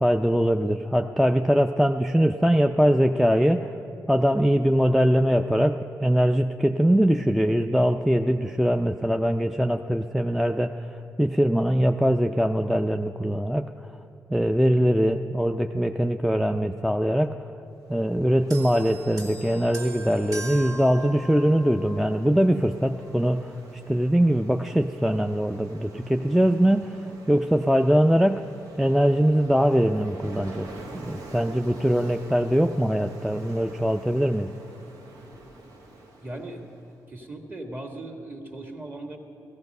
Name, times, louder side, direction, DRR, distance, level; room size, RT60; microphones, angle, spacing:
voice 1, 0.0-3.7 4.1-5.8 6.0-10.7 11.2-13.7 14.3-17.3 17.9-23.5 23.9-28.4 28.8-30.7 31.0-34.5, equal, ahead, 5 dB, 0.4 m, -22 dB
Ocean, 17.8-36.9, right 2 dB, 85° right, 1.7 m, -47 dB
sound 1, 18.5-22.1 23.0-23.2, right 2 dB, 65° right, 2.3 m, -40 dB
voice 2, 36.2-39.2, right 2 dB, 30° right, 3 dB, 1.9 m, -38 dB
16.0 x 14.0 x 5.4 m, 2.6 s
cardioid pair, 75°, 7 cm